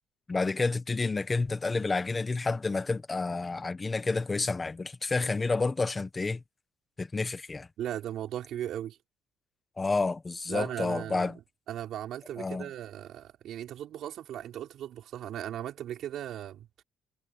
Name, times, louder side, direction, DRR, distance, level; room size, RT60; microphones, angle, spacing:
voice 1, 0.3-6.4 7.0-7.7 9.8-11.4 12.4-12.7, left 3 dB, 20° left, 1.3 m, -29 dB
voice 2, 7.8-9.0 10.5-11.3 11.7-16.8, right 11 dB, 60° right, 4.3 m, -37 dB
cardioid pair, 155°, 0 cm